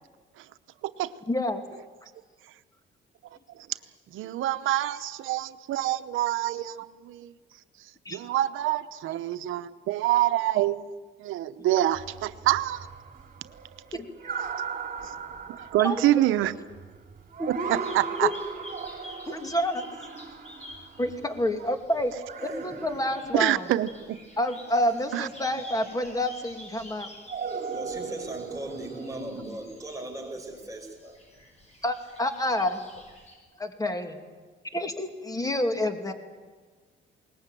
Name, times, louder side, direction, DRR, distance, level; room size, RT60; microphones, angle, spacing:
voice 1, 1.3-1.6 8.0-8.2 13.9-14.4 15.8-16.0 17.4-17.5 18.2-18.3 19.3-19.8 21.0-22.1 22.4-23.7 24.4-27.1 31.8-32.8 33.6-34.2 34.7-36.1, left 1 dB, 20° left, 6 dB, 2.5 m, -28 dB
voice 2, 4.1-7.3 8.1-10.9 11.2-12.9 15.0-15.1 15.5-16.6 17.5-18.3 23.3-24.2 25.1-25.3, right 14 dB, 85° right, 12 dB, 0.9 m, -26 dB
sound 1, 11.9-21.7 22.1-24.1 25.6-26.3 27.3-29.2, right 5 dB, 45° right, 2.7 m, -38 dB
sound 2, 17.8-33.4, left 1 dB, 35° left, 7.8 m, -50 dB
voice 3, 22.4-22.9 27.7-31.2, right 1 dB, 15° right, 0 dB, 5.5 m, -38 dB
21.0 x 19.5 x 9.1 m, 1.4 s
cardioid pair, 90°, 20 cm